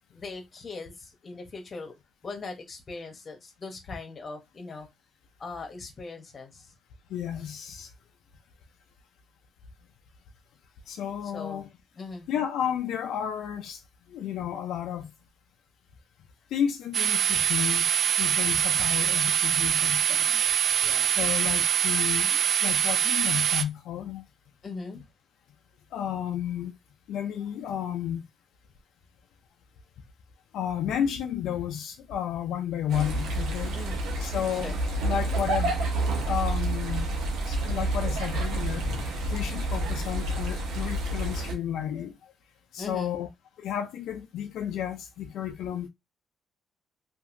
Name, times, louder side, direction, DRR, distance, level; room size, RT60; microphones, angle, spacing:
voice 1, 0.1-1.9 2.2-4.9 5.4-6.7 11.3-11.7 12.0-12.3 18.7-18.9 20.8-21.2 24.6-25.0 33.7-34.0 34.5-34.8 42.8-43.2, left 3 dB, 40° left, 1.0 m, -40 dB
voice 2, 7.1-7.9 10.9-11.7 12.3-13.8 14.1-15.1 16.5-20.4 21.1-24.2 25.9-26.8 27.1-28.2 30.5-33.8 34.2-34.8 35.0-35.7 36.3-37.1 37.5-42.2 42.7-43.3 43.6-45.9, left 9 dB, 80° left, 0.4 m, -32 dB
sound 1, 16.9-23.6, right 9 dB, 55° right, 0.4 m, -24 dB
sound 2, 32.9-41.6, right 1 dB, 90° right, 0.8 m, -29 dB
2.8 x 2.6 x 2.5 m
cardioid pair, 90°, 0 cm